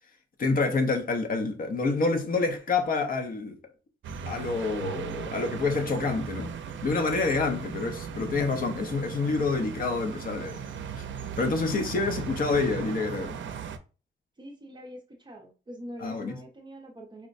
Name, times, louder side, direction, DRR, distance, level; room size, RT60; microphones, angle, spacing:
voice 1, 0.4-3.6 4.3-6.5 6.8-10.6 11.4-13.4 16.0-16.4, left 3 dB, 50° left, 0.6 m, -27 dB
sound 1, 4.0-13.8, right 7 dB, 80° right, 0.4 m, -37 dB
voice 2, 14.4-17.3, equal, 25° right, 0.6 m, -44 dB
4.5 x 2.1 x 2.5 m
wide cardioid pair, 175°, 19 cm